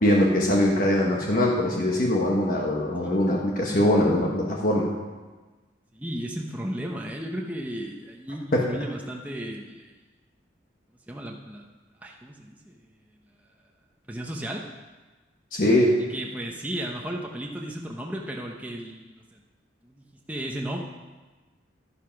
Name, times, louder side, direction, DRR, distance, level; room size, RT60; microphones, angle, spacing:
voice 1, 0.0-4.9 8.5-8.7 15.5-16.0, left 1 dB, 45° left, -2 dB, 1.3 m, -22 dB
voice 2, 5.9-9.9 11.1-11.6 12.0-12.8 14.1-14.6 16.1-19.4 19.8-20.8, right 1 dB, 10° right, 0 dB, 0.9 m, -34 dB
11.5 x 9.9 x 5.9 m, 1.3 s
head